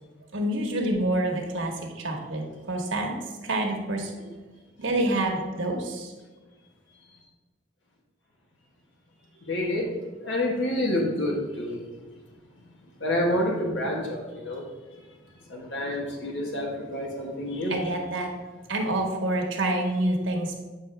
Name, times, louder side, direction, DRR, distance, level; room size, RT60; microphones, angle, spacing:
voice 1, 0.3-3.2 3.4-4.2 4.8-6.1 17.7-18.3 18.7-20.6, right 1 dB, 80° right, 1 dB, 1.4 m, -27 dB
voice 2, 9.4-9.9 10.2-11.8 13.0-14.6 15.5-17.9, left 1 dB, 70° left, -1 dB, 1.4 m, -28 dB
8.2 x 5.8 x 3.3 m, 1.3 s
head